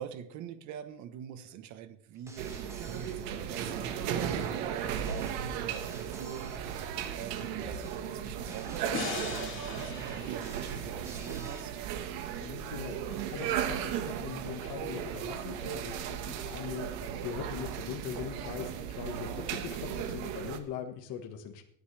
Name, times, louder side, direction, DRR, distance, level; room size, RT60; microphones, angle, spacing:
voice 1, 0.0-2.5 2.9-6.9 7.1-11.8, right 9 dB, 50° right, 12 dB, 1.2 m, -44 dB
Drum kit, 2.2-11.6, equal, 10° right, 1.6 m, -49 dB
sound 1, 2.4-20.6, right 9 dB, 80° right, 1.5 m, -36 dB
sound 2, 8.9-12.1, left 6 dB, 35° left, 2.5 m, -41 dB
voice 2, 12.4-21.6, left 8 dB, 55° left, 4 dB, 1.6 m, -41 dB
22.0 x 9.5 x 3.3 m, 0.72 s
cardioid pair, 135°, 36 cm